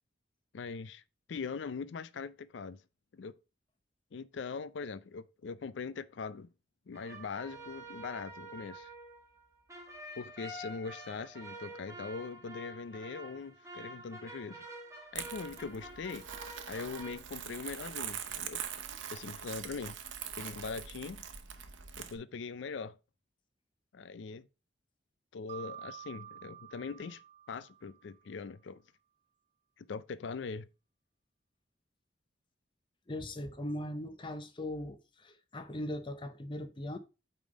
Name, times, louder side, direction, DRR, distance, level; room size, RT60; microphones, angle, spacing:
voice 1, 0.5-1.0 1.3-2.8 3.1-3.4 4.1-6.5 6.9-8.9 10.2-14.6 15.1-16.3 16.7-18.6 19.1-20.0 20.4-21.2 22.0-23.0 23.9-24.5 25.3-27.2 27.5-28.8 29.8-30.7, left 5 dB, 75° left, 0.4 m, -41 dB
sound 1, 6.9-17.1, right 1 dB, 15° right, 1.5 m, -48 dB
Crumpling crinkling, 15.1-22.1, right 8 dB, 90° right, 0.9 m, -43 dB
Mallet percussion, 25.5-28.3, right 10 dB, 35° right, 0.4 m, -49 dB
voice 2, 33.1-37.0, left 1 dB, 25° left, 0.7 m, -39 dB
8.6 x 3.6 x 4.9 m
head